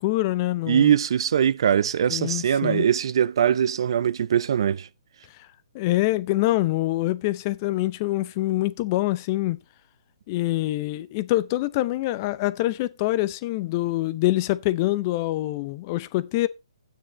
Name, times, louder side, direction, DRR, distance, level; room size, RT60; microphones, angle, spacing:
voice 1, 0.0-0.9 2.1-2.9 5.7-9.6 10.3-16.5, left 17 dB, 30° left, 0.7 m, -25 dB
voice 2, 0.7-4.9, right 9 dB, 55° right, 0.5 m, -21 dB
12.0 x 9.0 x 3.1 m
figure-of-eight pair, 140°, 3 cm